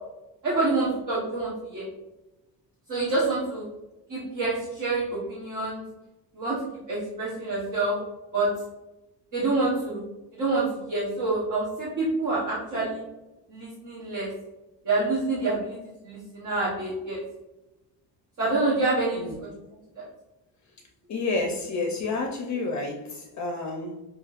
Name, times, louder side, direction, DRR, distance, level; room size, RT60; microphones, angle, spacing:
voice 1, 0.4-1.9 2.9-3.6 4.1-5.8 6.3-6.6 6.9-7.9 8.3-8.5 9.3-10.0 10.3-13.0 13.5-14.3 14.8-15.8 16.0-17.2 18.4-19.5, right 2 dB, 45° right, -7 dB, 1.1 m, -27 dB
voice 2, 21.1-24.0, left 3 dB, 40° left, 2 dB, 0.5 m, -30 dB
5.7 x 2.7 x 2.4 m, 0.99 s
cardioid pair, 175°, 43 cm